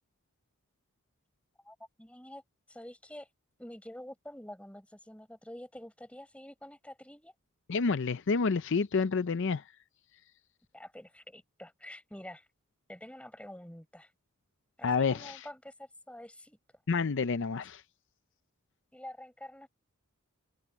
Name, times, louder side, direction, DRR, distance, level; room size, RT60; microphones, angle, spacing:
voice 1, 1.6-2.4 2.7-3.3 3.6-7.3 10.7-12.5 12.9-14.1 14.8-16.6 18.9-19.7, left 1 dB, 5° left, 5.8 m, -47 dB
voice 2, 7.7-9.6 14.8-15.4 16.9-17.8, left 4 dB, 60° left, 0.5 m, -29 dB
open air
head